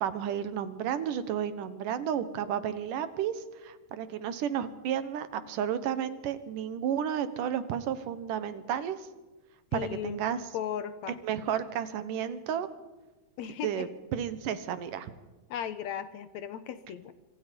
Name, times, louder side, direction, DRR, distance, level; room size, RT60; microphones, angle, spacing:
voice 1, 0.0-9.1 9.7-10.4 11.2-12.7 13.6-15.1, right 9 dB, 80° right, 12 dB, 2.9 m, -32 dB
voice 2, 9.7-10.2 10.5-11.2 13.4-13.9 15.5-17.1, left 9 dB, 70° left, 12 dB, 2.1 m, -36 dB
26.0 x 25.5 x 5.3 m, 1.2 s
omnidirectional pair, 3.7 m